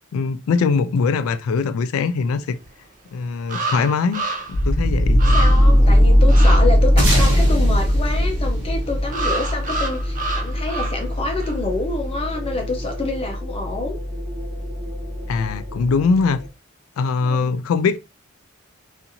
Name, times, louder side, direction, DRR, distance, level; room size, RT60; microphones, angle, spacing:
voice 1, 0.1-2.6 3.1-4.3 4.6-5.2 5.9-6.0 15.3-16.4 17.0-18.0, left 4 dB, 85° left, 0.3 m, -21 dB
sound 1, 2.6-2.7 3.5-4.7 4.9-5.0 5.2-5.8 6.3-6.6 9.1-11.1 11.4-11.6, right 2 dB, 40° right, 0.5 m, -28 dB
sound 2, 4.5-16.5, equal, 80° right, 1.1 m, -19 dB
voice 2, 5.3-14.0 17.2-17.6, left 2 dB, 30° left, 0.5 m, -27 dB
sound 3, 7.0-9.8, equal, 60° right, 1.0 m, -22 dB
2.8 x 2.5 x 2.5 m
head